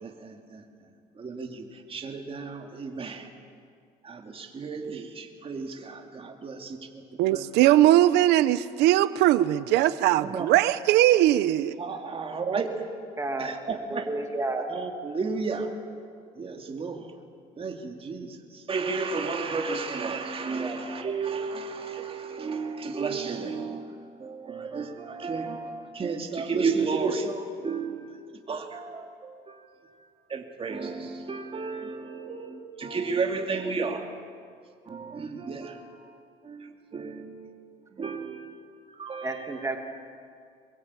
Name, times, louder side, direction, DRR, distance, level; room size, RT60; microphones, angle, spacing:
voice 1, 0.0-0.6 1.2-3.3 4.0-7.0 7.3-7.4 10.2-10.5 11.8-12.7 13.4-14.1 14.7-15.7 16.4-17.1 17.6-23.9 24.2-29.6 30.3-34.1 34.9-36.0 36.4-38.6 38.9-39.6, right 4 dB, 35° right, 3 dB, 2.6 m, -33 dB
voice 2, 7.2-11.7, right 14 dB, 90° right, 15 dB, 0.9 m, -20 dB
voice 3, 13.2-13.5 13.9-14.6 20.6-20.8 39.2-39.8, right 2 dB, 15° right, 3 dB, 2.6 m, -31 dB
23.5 x 22.0 x 8.5 m, 2.2 s
cardioid pair, 110°, 17 cm